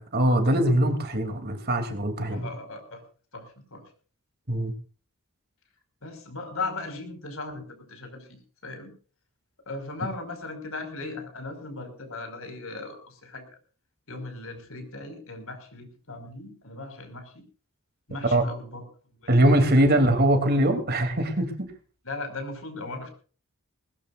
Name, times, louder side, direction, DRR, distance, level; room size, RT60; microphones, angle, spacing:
voice 1, 0.0-2.5 4.5-4.7 18.3-18.4 19.3-21.7, right 1 dB, 45° right, 6 dB, 3.1 m, -22 dB
voice 2, 2.3-3.0 3.3-3.8 6.0-8.9 9.6-13.5 14.1-17.4 18.1-19.9 22.0-23.1, left 3 dB, 65° left, 6 dB, 5.5 m, -38 dB
21.0 x 19.5 x 2.6 m, 0.39 s
head